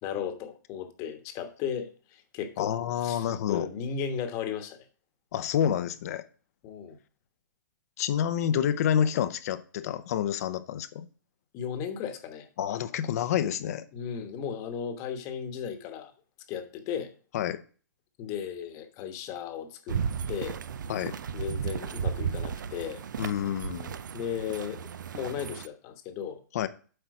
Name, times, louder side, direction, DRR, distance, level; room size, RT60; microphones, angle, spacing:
voice 1, 0.0-4.9 6.6-7.0 11.5-12.5 13.9-16.1 16.5-17.1 18.2-20.0 20.3-20.6 21.3-23.0 24.1-24.9 25.1-26.4, left 8 dB, 35° left, 1.2 m, -35 dB
voice 2, 2.6-3.7 5.3-6.2 8.0-11.1 12.6-13.8 17.3-17.6 20.9-21.2 23.2-24.0 26.5-26.7, left 9 dB, 55° left, 0.7 m, -28 dB
sound 1, 19.9-25.7, right 7 dB, 75° right, 0.5 m, -34 dB
7.9 x 4.4 x 4.8 m
hypercardioid pair, 135°, 10 cm